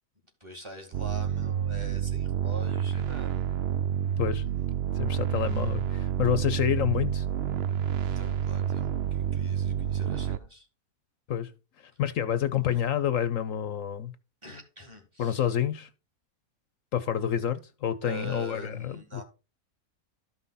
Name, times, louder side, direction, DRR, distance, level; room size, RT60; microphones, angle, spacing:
voice 1, 0.4-3.5 8.0-10.7 12.6-13.0 14.4-15.5 18.0-19.2, right 2 dB, 20° right, 2.2 m, -44 dB
sound 1, 0.9-10.4, right 9 dB, 60° right, 0.7 m, -29 dB
voice 2, 4.9-7.3 11.3-11.5 11.8-14.1 15.2-15.9 16.9-19.2, left 9 dB, 70° left, 1.1 m, -28 dB
13.0 x 5.6 x 4.1 m
omnidirectional pair, 1.5 m